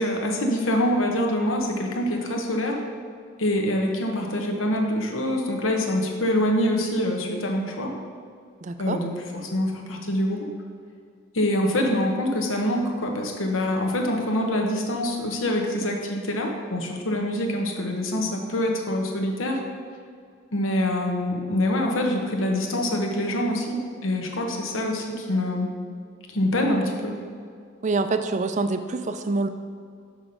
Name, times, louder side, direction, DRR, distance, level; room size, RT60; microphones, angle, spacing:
voice 1, 0.0-2.8 3.4-7.9 8.8-10.4 11.3-19.6 20.5-25.7 26.3-27.1, left 1 dB, 85° left, 1 dB, 1.0 m, -25 dB
voice 2, 8.6-9.0 27.8-29.5, right 3 dB, 35° right, 9 dB, 0.4 m, -26 dB
6.1 x 5.7 x 5.1 m, 2.2 s
head